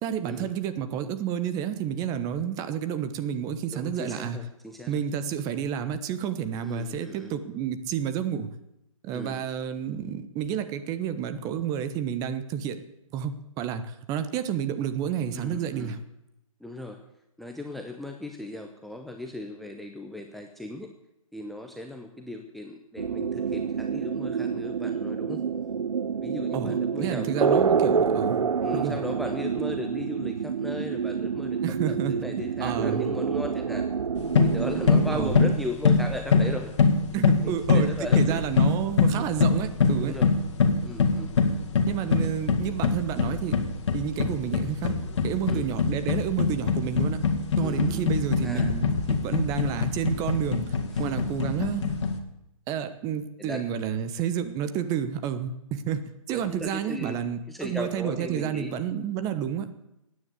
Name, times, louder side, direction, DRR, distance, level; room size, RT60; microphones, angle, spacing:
voice 1, 0.0-4.4 4.9-8.5 9.0-12.8 13.1-16.0 26.5-28.4 28.7-29.0 31.6-33.1 35.1-35.4 37.1-40.2 41.9-43.6 43.9-44.9 45.2-47.2 47.6-52.0 52.7-56.0 56.3-59.7, right 9 dB, 20° right, 11 dB, 1.1 m, -30 dB
voice 2, 3.7-5.0 6.6-7.3 9.1-9.4 15.3-16.0 16.6-17.0 17.4-20.9 21.3-25.4 26.2-27.7 28.6-31.6 31.9-33.9 34.4-36.7 37.4-38.4 39.1-39.2 40.0-40.3 40.8-41.3 45.5-45.6 47.6-48.0 48.4-48.7 50.9-51.1 53.4-53.6 56.3-57.1 57.5-58.7, left 1 dB, ahead, 3 dB, 0.8 m, -37 dB
sound 1, 23.0-35.5, right 6 dB, 80° right, 0.7 m, -27 dB
sound 2, 34.2-52.2, left 4 dB, 55° left, 2.2 m, -24 dB
16.0 x 9.8 x 8.2 m, 0.83 s
hypercardioid pair, 140°, 18 cm